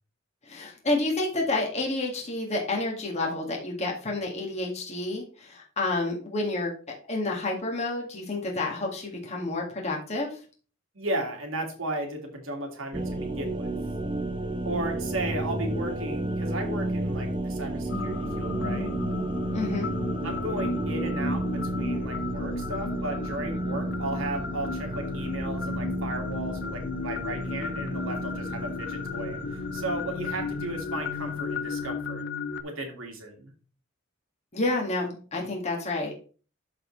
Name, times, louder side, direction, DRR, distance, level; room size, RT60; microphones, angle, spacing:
voice 1, 0.5-10.4 19.5-19.9 34.5-36.2, left 2 dB, 35° left, -1 dB, 2.0 m, -29 dB
voice 2, 10.9-13.8 14.6-18.9 20.2-32.2 32.6-33.5, right 1 dB, 75° right, 2 dB, 2.1 m, -35 dB
sound 1, 12.9-31.8, right 1 dB, 25° right, 0.9 m, -33 dB
sound 2, 17.9-32.6, left 4 dB, 55° left, 0.6 m, -34 dB
12.5 x 4.2 x 3.2 m, 0.38 s
head